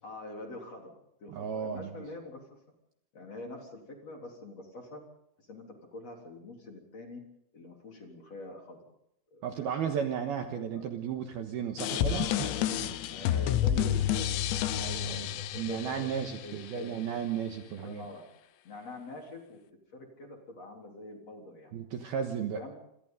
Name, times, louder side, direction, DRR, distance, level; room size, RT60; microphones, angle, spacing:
voice 1, 0.0-2.5 3.1-5.0 5.4-7.2 7.5-8.8 9.3-9.9 10.7-10.8 11.8-14.6 14.9-16.1 16.4-17.2 17.8-18.2 18.6-19.6 19.9-21.7 22.6-22.7, left 2 dB, 35° left, 1 dB, 4.1 m, -45 dB
voice 2, 1.3-1.9 9.4-12.5 12.8-12.9 14.7-15.3 15.5-18.0 21.7-22.6, right 8 dB, 65° right, 5 dB, 2.7 m, -34 dB
sound 1, 11.8-16.7, left 11 dB, 75° left, 3.0 m, -30 dB
27.0 x 27.0 x 3.9 m, 0.79 s
omnidirectional pair, 5.7 m